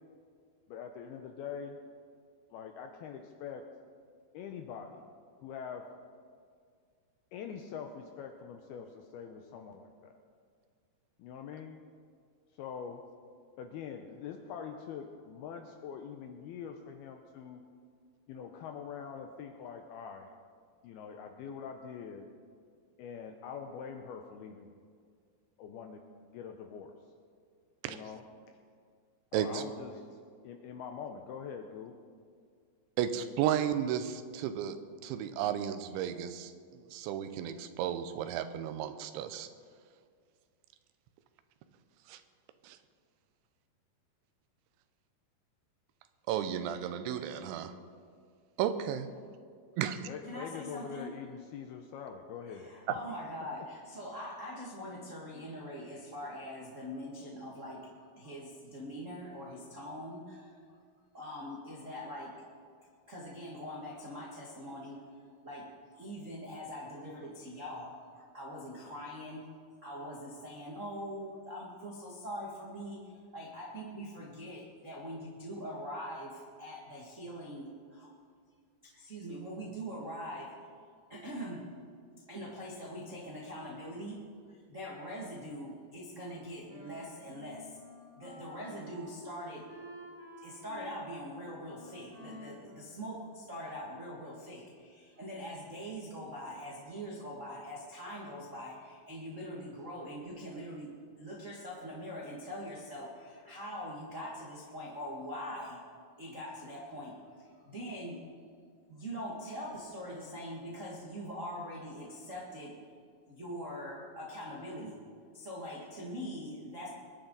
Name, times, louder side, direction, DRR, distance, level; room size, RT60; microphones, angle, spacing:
voice 1, 0.7-1.8 2.5-3.7 4.3-5.1 5.4-5.9 7.3-10.1 11.2-11.8 12.6-13.0 13.6-17.6 18.3-20.3 20.8-22.3 23.0-24.7 25.6-26.9 27.9-28.2 29.3-30.1 30.4-31.9 50.1-52.7 53.1-53.2, left 7 dB, 80° left, 5 dB, 2.3 m, -44 dB
voice 2, 29.3-29.6 33.0-34.8 35.0-39.5 42.1-42.2 42.6-42.8 46.3-47.7 48.6-49.1 49.8-50.0, right 10 dB, 90° right, 10 dB, 3.1 m, -33 dB
voice 3, 50.3-51.1 52.4-60.6 61.1-62.3 63.1-65.0 65.4-65.6 65.9-69.5 69.8-78.1 78.8-80.5 81.1-81.7 82.3-84.2 84.5-87.7 88.1-89.7 90.4-105.8 106.2-108.2 108.9-112.8 113.2-115.0 115.3-116.9, equal, 70° right, -5 dB, 0.7 m, -43 dB
Wind instrument woodwind instrument, 86.2-93.7, equal, 20° right, 4.3 m, -52 dB
23.0 x 10.5 x 4.0 m, 2.1 s
omnidirectional pair, 5.2 m